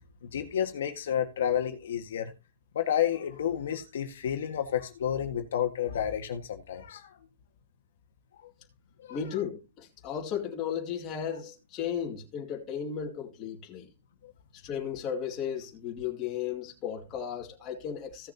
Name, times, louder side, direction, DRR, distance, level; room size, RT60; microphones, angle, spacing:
voice 1, 0.2-2.3 2.7-7.2 8.4-8.5 9.1-9.2, left 9 dB, 65° left, 1.7 m, -30 dB
voice 2, 9.1-13.9 14.6-18.3, left 8 dB, 20° left, 2.4 m, -35 dB
16.5 x 6.7 x 2.9 m
hypercardioid pair, 165°, 0 cm